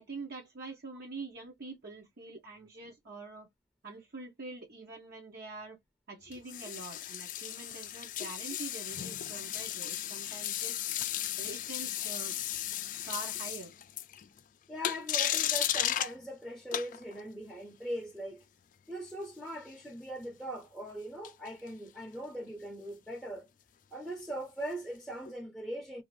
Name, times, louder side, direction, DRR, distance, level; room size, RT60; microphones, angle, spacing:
voice 1, 0.0-3.5 3.8-5.8 6.1-10.8 11.4-12.4 13.1-13.7, right 3 dB, 60° right, 0.9 m, -45 dB
sound 1, 6.3-14.4 14.8-16.1 16.7-17.2 21.2-21.7 25.2-25.3, left 11 dB, 45° left, 0.3 m, -35 dB
voice 2, 14.7-18.4 18.9-23.5 23.9-26.0, right 1 dB, ahead, 0.6 m, -40 dB
2.6 x 2.5 x 3.0 m
head